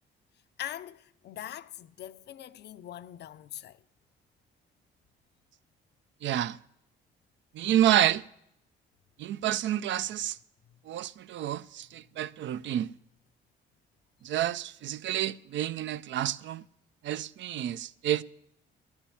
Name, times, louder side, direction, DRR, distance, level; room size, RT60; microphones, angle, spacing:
voice 1, 0.6-3.8 10.7-10.8, left 12 dB, 60° left, 0.5 m, -42 dB
voice 2, 6.2-6.6 7.5-8.2 9.2-10.4 10.9-12.9 14.2-16.6 17.0-18.2, right 12 dB, 70° right, 0.4 m, -29 dB
11.5 x 7.3 x 8.5 m
cardioid pair, 90°, 20 cm